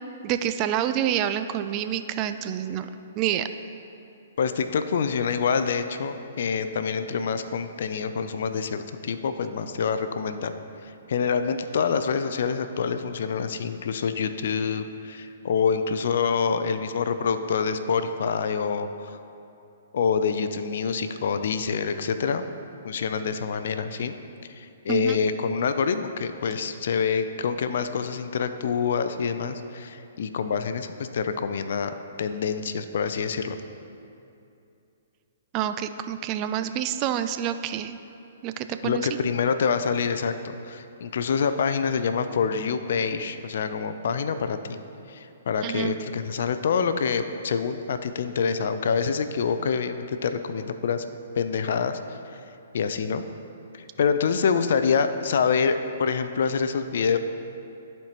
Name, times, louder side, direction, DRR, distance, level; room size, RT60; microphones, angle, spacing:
voice 1, 0.2-2.9 3.2-3.5 24.9-25.2 35.5-38.0 38.4-39.1 45.6-46.0, right 10 dB, 35° right, 10 dB, 0.3 m, -27 dB
voice 2, 4.4-10.5 10.8-19.2 19.9-22.4 22.8-24.2 24.5-33.6 38.8-44.8 45.1-51.0 51.3-52.4 52.7-53.2 53.7-57.2, left 6 dB, 65° left, 10 dB, 0.4 m, -26 dB
13.0 x 4.4 x 2.9 m, 2.7 s
hypercardioid pair, 130°, 0 cm